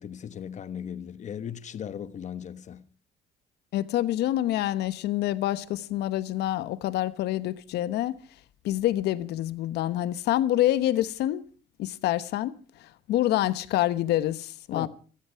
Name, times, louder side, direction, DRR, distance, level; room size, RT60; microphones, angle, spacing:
voice 1, 0.0-2.8 14.7-14.9, left 8 dB, 45° left, 1.1 m, -37 dB
voice 2, 3.7-8.2 8.6-11.4 11.8-12.6 13.1-14.9, left 13 dB, 80° left, 1.0 m, -26 dB
16.5 x 14.0 x 5.7 m
cardioid pair, 110°, 17 cm